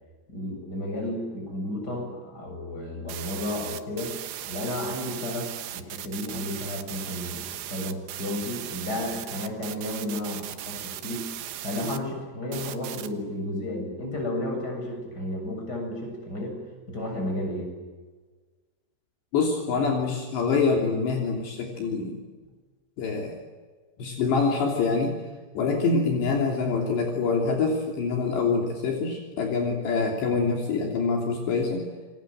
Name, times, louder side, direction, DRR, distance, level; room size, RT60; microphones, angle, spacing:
voice 1, 0.3-4.1 4.4-11.3 11.6-16.6 16.9-17.7 23.0-23.1, left 1 dB, 20° left, 2 dB, 7.9 m, -32 dB
sound 1, 3.1-12.0 12.5-13.1, right 12 dB, 70° right, 3.0 m, -37 dB
voice 2, 19.3-22.2 23.0-23.4 24.0-25.2 25.5-31.8, left 4 dB, 65° left, 1 dB, 5.2 m, -25 dB
28.5 x 23.5 x 7.9 m, 1.4 s
omnidirectional pair, 5.5 m